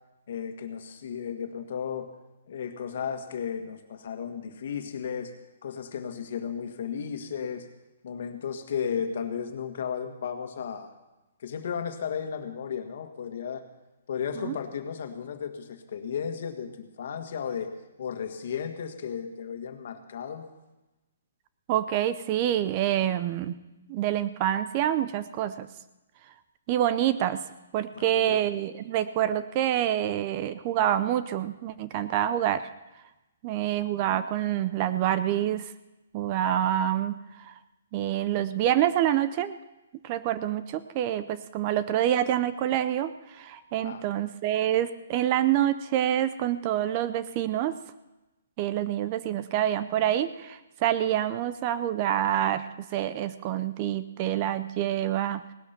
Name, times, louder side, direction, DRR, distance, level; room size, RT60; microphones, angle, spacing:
voice 1, 0.3-2.1 2.5-5.3 5.6-7.7 8.0-10.9 11.4-13.6 14.1-20.4 27.9-28.4 43.8-44.1, left 7 dB, 50° left, 6 dB, 1.8 m, -34 dB
voice 2, 21.7-23.5 23.9-25.7 26.7-27.4 27.7-32.7 33.4-35.6 36.1-37.5 37.9-39.6 40.0-47.8 48.6-52.6 52.9-55.4, right 11 dB, 25° right, 13 dB, 0.4 m, -27 dB
18.0 x 12.0 x 6.0 m, 1.0 s
hypercardioid pair, 170°, 0 cm